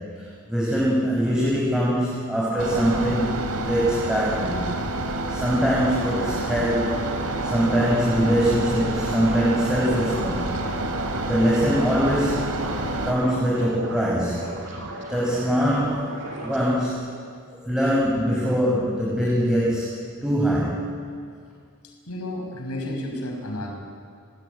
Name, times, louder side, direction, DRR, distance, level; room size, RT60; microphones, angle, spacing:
voice 1, 0.2-4.7 5.3-7.0 7.4-10.5 11.3-12.5 13.0-14.4 15.1-16.1 16.4-17.0 17.5-20.9, equal, 5° right, -5 dB, 5.1 m, -23 dB
sound 1, 2.6-13.1, right 2 dB, 85° right, 3.4 m, -28 dB
sound 2, 5.8-16.9, right 2 dB, 60° right, 6.4 m, -36 dB
voice 2, 22.1-23.7, left 1 dB, 75° left, 1 dB, 6.5 m, -31 dB
29.5 x 20.0 x 9.3 m, 2.3 s
head